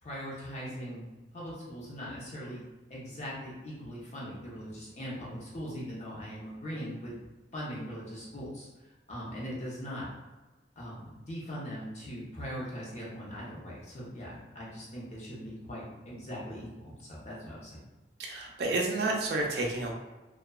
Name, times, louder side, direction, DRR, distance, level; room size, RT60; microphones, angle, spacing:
voice 1, 0.0-1.0 1.3-2.6 2.9-7.1 7.5-8.7 9.1-10.1 10.8-17.8, equal, 40° left, -6 dB, 0.7 m, -40 dB
voice 2, 18.2-19.9, right 2 dB, 60° right, 0 dB, 0.4 m, -30 dB
2.7 x 2.2 x 2.3 m, 1.1 s
head